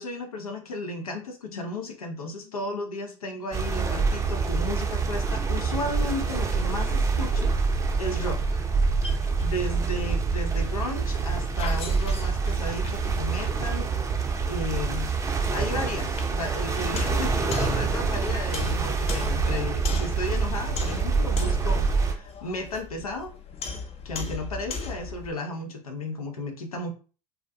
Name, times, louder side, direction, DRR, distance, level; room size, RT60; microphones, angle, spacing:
voice 1, 0.0-8.6 9.4-13.9 14.4-15.1 15.5-23.3 24.0-26.9, left 1 dB, 90° left, 4 dB, 0.6 m, -34 dB
sound 1, 3.5-22.1, right 4 dB, 15° right, 0.5 m, -26 dB
sound 2, 8.7-25.3, left 4 dB, 35° left, 0.5 m, -38 dB
2.4 x 2.1 x 2.6 m, 0.37 s
hypercardioid pair, 70°, 18 cm